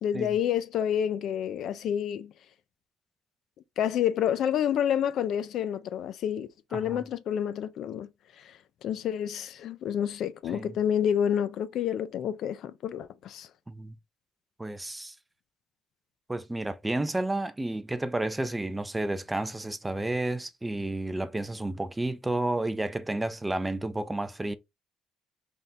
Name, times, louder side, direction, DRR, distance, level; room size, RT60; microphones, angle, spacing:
voice 1, 0.0-2.3 3.8-8.1 8.4-13.5, left 9 dB, 60° left, 0.4 m, -29 dB
voice 2, 6.7-7.0 10.5-10.7 13.7-13.9 14.6-15.1 16.3-24.5, right 2 dB, 10° right, 0.4 m, -31 dB
3.5 x 2.5 x 4.2 m
cardioid pair, 145°, 0 cm